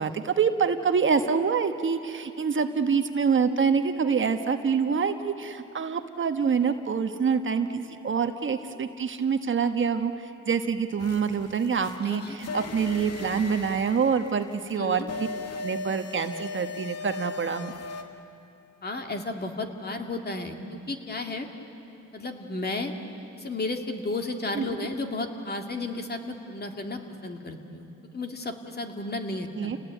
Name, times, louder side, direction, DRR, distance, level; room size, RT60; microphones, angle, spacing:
voice 1, 0.0-15.3 15.5-17.7 24.5-24.9 29.5-29.8, right 6 dB, 40° right, 7 dB, 1.3 m, -26 dB
sound 1, 11.0-18.0, left 3 dB, 55° left, 2.2 m, -38 dB
voice 2, 12.0-12.4 14.7-15.1 18.8-21.5 22.1-22.9 23.4-27.9 28.1-29.7, left 2 dB, 30° left, 4 dB, 2.4 m, -33 dB
30.0 x 19.0 x 9.2 m, 2.7 s
cardioid pair, 90°, 30 cm